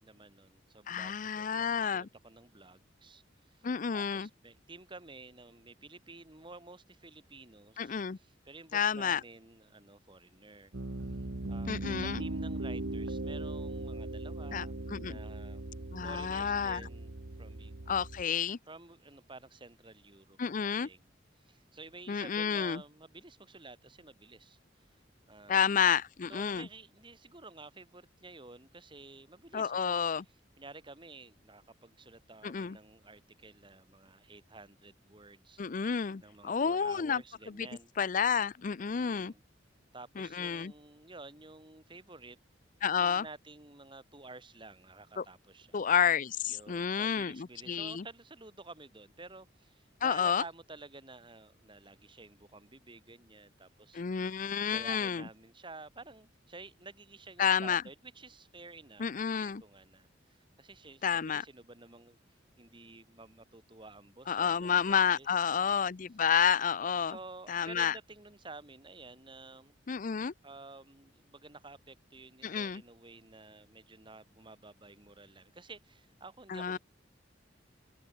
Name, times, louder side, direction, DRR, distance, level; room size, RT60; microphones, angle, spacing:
voice 1, 0.0-10.7 11.5-15.6 16.0-17.1 17.4-18.0 18.7-21.1 21.4-24.9 25.3-25.8 26.3-30.1 30.6-35.6 36.2-37.9 38.8-39.4 39.9-42.4 42.9-45.8 46.5-54.4 54.7-59.1 59.3-62.2 62.6-65.3 65.6-65.8 67.1-69.7 70.4-76.8, right 3 dB, 25° right, 3.7 m, -52 dB
voice 2, 0.9-2.1 3.6-4.3 7.8-8.2 8.7-9.2 11.7-12.2 14.5-14.6 14.9-15.2 15.9-16.8 17.9-18.6 20.4-20.9 22.1-22.8 25.5-26.7 29.5-30.2 32.4-32.8 35.6-37.2 37.6-37.7 38.0-39.3 40.2-40.7 42.8-43.2 45.2-45.3 45.7-48.0 50.0-50.4 53.9-55.2 57.4-57.8 59.0-59.6 61.0-61.4 64.3-67.2 67.5-68.0 69.9-70.3 72.4-72.8 76.5-76.8, left 7 dB, 45° left, 0.5 m, -30 dB
Piano, 10.7-18.2, right 2 dB, 75° right, 1.4 m, -39 dB
open air
head